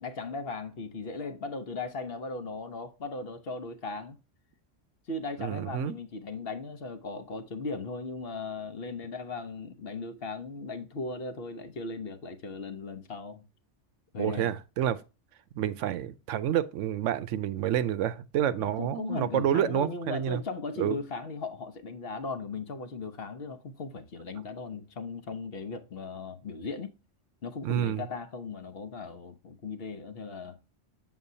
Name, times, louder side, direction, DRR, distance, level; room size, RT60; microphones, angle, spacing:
voice 1, 0.0-4.2 5.1-13.4 14.1-14.5 18.6-26.9 27.4-30.6, left 3 dB, 55° left, 1.0 m, -37 dB
voice 2, 5.4-6.0 14.2-15.0 15.6-20.4 20.8-21.0 27.6-28.1, right 10 dB, 80° right, 0.9 m, -29 dB
7.4 x 7.0 x 2.7 m
omnidirectional pair, 1.3 m